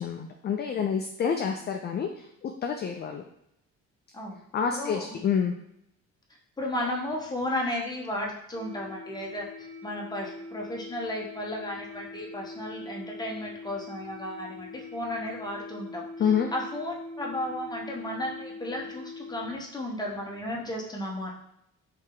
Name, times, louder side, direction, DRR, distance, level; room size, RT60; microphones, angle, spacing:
voice 1, 0.0-3.2 4.5-5.5 16.2-16.5, left 7 dB, 35° left, 4 dB, 0.4 m, -28 dB
voice 2, 4.7-5.1 6.6-21.3, left 1 dB, 15° left, -1 dB, 0.9 m, -34 dB
sound 1, 8.5-19.5, left 2 dB, 20° right, 1.1 m, -43 dB
3.3 x 2.6 x 3.8 m, 0.79 s
cardioid pair, 90°, 30 cm